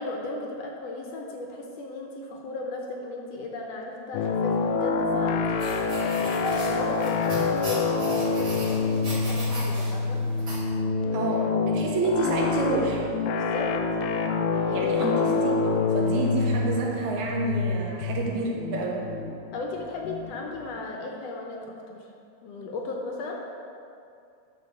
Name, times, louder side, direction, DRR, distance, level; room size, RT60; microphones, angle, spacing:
voice 1, 0.0-10.2 13.3-13.8 14.3-14.9 19.5-22.1 22.4-23.4, left 2 dB, 70° left, 0 dB, 1.8 m, -36 dB
sound 1, 4.1-20.7, left 4 dB, 90° left, 2.0 m, -26 dB
sound 2, 5.6-10.6, right 1 dB, 35° right, 2.3 m, -38 dB
voice 2, 11.1-13.1 14.7-19.0, right 3 dB, 75° right, -1 dB, 2.6 m, -29 dB
10.5 x 4.6 x 6.6 m, 2.5 s
omnidirectional pair, 3.4 m